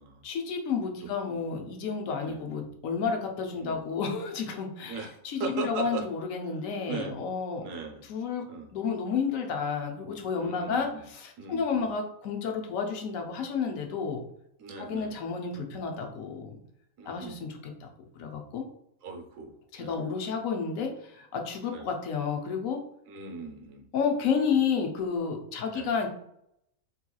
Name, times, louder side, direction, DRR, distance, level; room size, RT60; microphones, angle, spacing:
voice 1, 0.2-7.6 8.0-8.5 8.7-14.2 14.8-16.5 17.0-17.9 18.2-18.7 19.7-22.8 23.9-26.1, left 6 dB, 75° left, 3 dB, 1.0 m, -31 dB
voice 2, 5.4-6.0 6.8-7.2 7.6-8.0 8.5-8.7 10.4-11.0 11.4-11.9 14.6-15.1 17.0-17.4 19.0-19.5 19.8-20.0 21.7-21.9 23.1-23.8 25.7-25.9, right 5 dB, 70° right, 2 dB, 1.0 m, -38 dB
3.7 x 2.8 x 2.2 m, 0.74 s
omnidirectional pair, 1.4 m